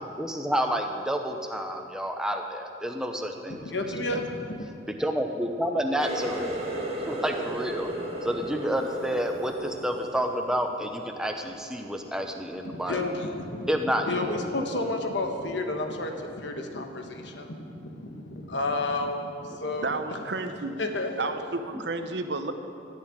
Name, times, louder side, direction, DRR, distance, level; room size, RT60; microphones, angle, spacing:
voice 1, 0.0-3.7 4.1-4.2 5.0-6.6 7.1-7.9 8.2-13.0 13.7-14.8 16.7-16.8 21.7-21.8, equal, 5° right, 3 dB, 0.8 m, -29 dB
voice 2, 3.5-4.7 12.6-13.8 14.1-20.4 20.8-21.5, left 2 dB, 75° left, 4 dB, 1.3 m, -31 dB
Water tap faucet, 6.0-11.5 11.9-12.3 12.8-13.1 13.8-13.9, right 1 dB, 35° right, 1.6 m, -35 dB
voice 3, 19.8-20.8 21.2-22.5, right 3 dB, 70° right, 8 dB, 0.8 m, -31 dB
14.0 x 6.7 x 9.0 m, 2.8 s
head